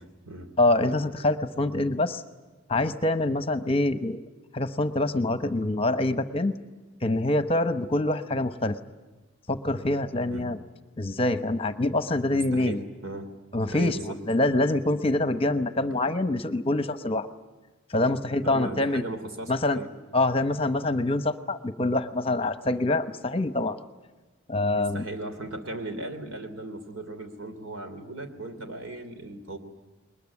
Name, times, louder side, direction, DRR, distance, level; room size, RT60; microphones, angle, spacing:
voice 1, 0.0-0.5 10.3-10.5 12.3-13.3 13.7-14.2 18.4-19.9 24.7-29.6, right 2 dB, 80° right, 7 dB, 3.0 m, -37 dB
voice 2, 0.6-2.2 2.7-4.2 4.5-6.5 7.0-8.8 9.5-10.6 11.0-12.8 13.5-14.0 14.3-17.3 17.9-19.0 19.5-19.8 20.1-23.8 24.5-25.0, left 2 dB, 25° left, 10 dB, 0.9 m, -25 dB
21.5 x 20.5 x 9.6 m, 1.2 s
head